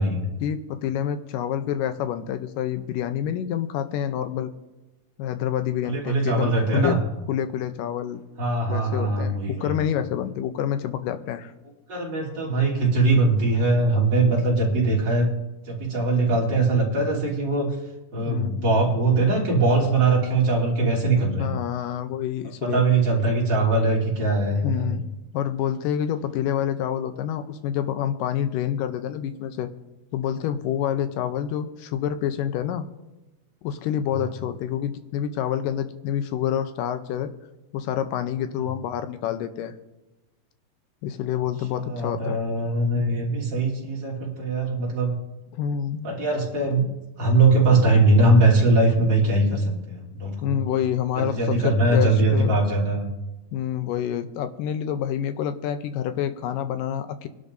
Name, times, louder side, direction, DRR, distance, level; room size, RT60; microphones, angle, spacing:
voice 1, 0.4-4.5 5.2-7.0 7.3-8.2 8.7-11.5 18.1-18.8 21.2-22.8 24.6-25.0 25.3-29.7 30.1-32.9 33.6-37.3 37.7-39.7 41.0-42.4 45.5-46.1 50.4-52.6 53.5-57.3, left 10 dB, 75° left, 9 dB, 2.3 m, -27 dB
voice 2, 5.8-7.0 8.4-9.7 11.9-15.3 15.6-17.7 18.1-21.5 22.6-25.0 34.2-34.3 41.8-45.1 46.0-46.8 47.2-50.6 51.2-53.1, right 2 dB, 30° right, -4 dB, 3.5 m, -21 dB
24.5 x 11.5 x 2.7 m, 1.0 s
omnidirectional pair, 4.1 m